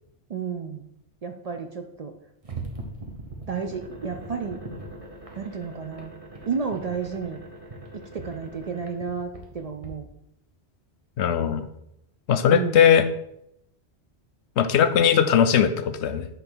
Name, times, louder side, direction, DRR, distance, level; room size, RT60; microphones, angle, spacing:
voice 1, 0.3-0.9 1.2-2.1 3.5-4.6 5.4-6.2 6.4-7.4 7.9-10.1 12.5-12.9, right 6 dB, 50° right, 5 dB, 0.4 m, -32 dB
sound 1, 2.4-9.9, right 2 dB, 35° right, 1.1 m, -40 dB
voice 2, 11.2-11.7 12.3-13.0 14.6-16.3, left 8 dB, 85° left, 11 dB, 0.9 m, -19 dB
5.5 x 4.0 x 6.0 m, 0.79 s
omnidirectional pair, 1.1 m